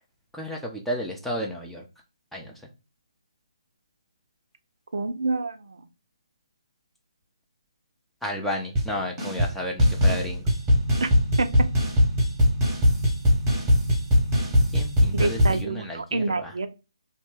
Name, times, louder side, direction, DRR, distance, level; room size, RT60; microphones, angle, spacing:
voice 1, 0.3-1.8 2.3-2.6 8.2-10.5 14.7-16.5, left 1 dB, ahead, -1 dB, 0.5 m, -32 dB
voice 2, 4.9-5.8 11.0-11.1 11.4-11.5 15.1-16.7, right 3 dB, 65° right, 10 dB, 0.4 m, -27 dB
sound 1, 8.8-8.9 9.2-9.5 9.8-15.6, equal, 15° right, 0.9 m, -21 dB
2.8 x 2.1 x 3.1 m, 0.29 s
figure-of-eight pair, 145°, 3 cm